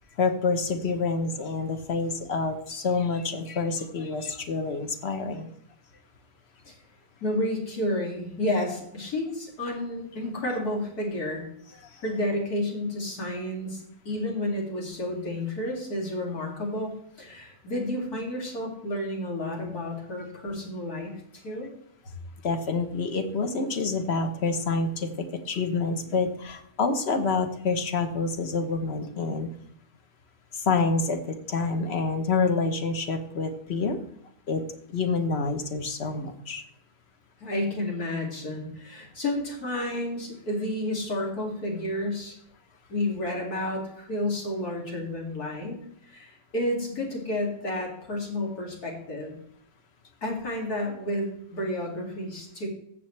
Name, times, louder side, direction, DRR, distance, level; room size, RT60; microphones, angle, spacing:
voice 1, 0.2-5.5 11.9-12.0 22.4-29.5 30.5-34.0 34.5-34.6 34.9-36.6, left 4 dB, 50° left, 7 dB, 1.2 m, -27 dB
voice 2, 7.2-11.4 12.0-21.7 37.4-42.3 42.9-45.8 46.0-49.3 50.2-52.7, left 1 dB, 90° left, -1 dB, 3.1 m, -31 dB
13.5 x 7.6 x 3.3 m, 0.74 s
omnidirectional pair, 1.6 m